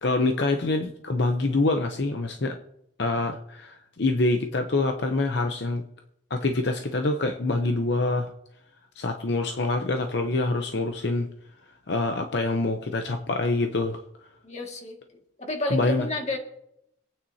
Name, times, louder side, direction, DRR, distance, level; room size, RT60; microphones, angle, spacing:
voice 1, 0.0-2.6 3.0-5.8 6.3-8.3 9.0-11.3 11.9-14.0 15.7-16.1, left 2 dB, 70° left, 5 dB, 0.8 m, -25 dB
voice 2, 14.4-15.0 15.4-16.4, left 1 dB, 40° left, 2 dB, 2.0 m, -30 dB
25.5 x 9.2 x 2.8 m, 0.80 s
head